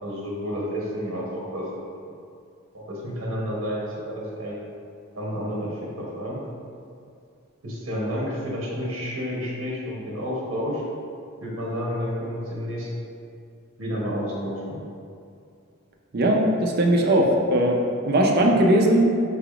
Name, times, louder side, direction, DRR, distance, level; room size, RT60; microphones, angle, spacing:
voice 1, 0.0-1.7 2.7-4.6 5.1-6.4 7.6-10.8 11.4-12.9 13.8-14.8, equal, 70° right, -4 dB, 0.9 m, -30 dB
voice 2, 16.1-17.8 18.1-19.0, right 1 dB, 50° right, 0 dB, 0.5 m, -19 dB
5.6 x 3.4 x 2.4 m, 2.4 s
head